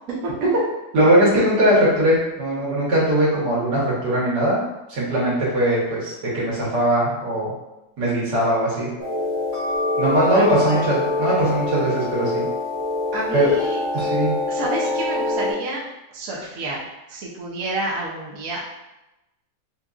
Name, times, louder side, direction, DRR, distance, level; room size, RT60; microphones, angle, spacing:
voice 1, 0.1-0.5 10.1-10.8 13.1-13.8 14.5-15.8 16.1-18.6, right 2 dB, 60° right, -4 dB, 1.1 m, -29 dB
voice 2, 0.9-4.6 4.9-7.5 8.0-8.9 10.0-12.5 13.3-13.5 13.9-14.3, right 1 dB, 80° right, -6 dB, 1.9 m, -20 dB
sound 1, 9.0-15.5, left 2 dB, 45° right, 1.9 m, -25 dB
5.9 x 2.6 x 2.4 m, 0.96 s
omnidirectional pair, 1.8 m